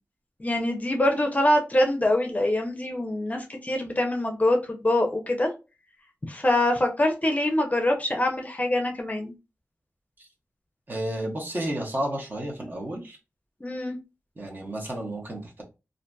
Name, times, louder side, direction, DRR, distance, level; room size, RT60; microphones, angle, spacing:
voice 1, 0.4-5.5 6.3-9.3 13.6-14.0, left 1 dB, 30° left, 3 dB, 0.5 m, -24 dB
voice 2, 10.9-13.2 14.4-15.6, right 1 dB, 40° right, 0 dB, 0.9 m, -32 dB
2.7 x 2.5 x 2.2 m, 0.28 s
wide cardioid pair, 75°, 5 cm